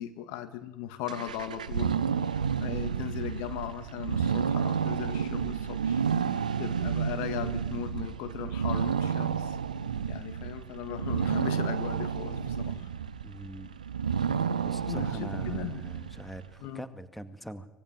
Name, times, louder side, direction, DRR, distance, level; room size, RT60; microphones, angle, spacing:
voice 1, 0.0-9.6 10.1-12.9 14.9-15.8 16.6-16.8, left 12 dB, 65° left, 10 dB, 2.0 m, -38 dB
sound 1, 1.1-16.5, right 7 dB, 85° right, 0.9 m, -31 dB
voice 2, 13.2-13.7 14.6-17.7, right 1 dB, 5° left, 11 dB, 2.1 m, -42 dB
24.5 x 20.5 x 9.6 m, 0.97 s
figure-of-eight pair, 65°, 4 cm